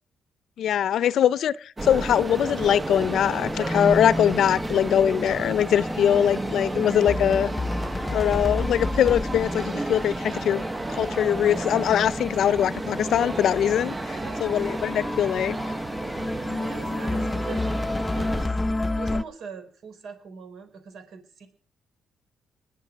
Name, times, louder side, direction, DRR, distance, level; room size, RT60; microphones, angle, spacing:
voice 1, 0.6-7.5 8.1-10.6 11.0-14.0 14.4-15.6, left 9 dB, 70° left, 0.6 m, -22 dB
sound 1, 1.8-18.5, right 2 dB, 20° right, 0.8 m, -32 dB
sound 2, 3.5-19.2, left 2 dB, 20° left, 0.7 m, -31 dB
voice 2, 14.1-14.6 16.5-17.7 18.2-18.5 19.0-21.5, right 6 dB, 70° right, 4.6 m, -42 dB
21.0 x 7.5 x 6.2 m
cardioid pair, 90°, 0 cm